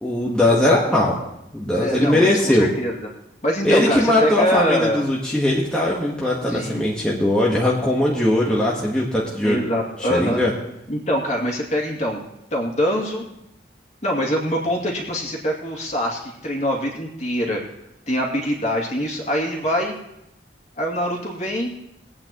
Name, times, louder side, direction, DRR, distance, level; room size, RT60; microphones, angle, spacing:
voice 1, 0.0-1.2 1.5-2.7 3.6-9.6 10.0-10.5, left 1 dB, 5° left, -5 dB, 1.2 m, -20 dB
voice 2, 1.7-3.0 3.4-5.0 6.5-6.8 9.4-10.4 10.9-12.2 12.5-13.2 14.0-17.6 18.1-19.9 20.8-21.7, equal, 35° left, -2 dB, 2.2 m, -24 dB
21.0 x 8.7 x 3.0 m, 0.84 s
head